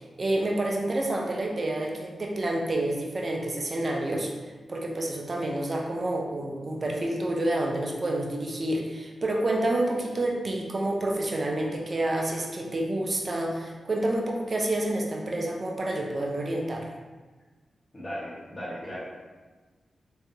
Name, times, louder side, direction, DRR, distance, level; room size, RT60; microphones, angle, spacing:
voice 1, 0.0-4.3 4.7-16.9, right 1 dB, 50° right, 0 dB, 0.7 m, -28 dB
voice 2, 17.9-19.0, equal, 30° left, -10 dB, 1.3 m, -36 dB
3.4 x 3.3 x 2.8 m, 1.3 s
supercardioid pair, 45°, 0 cm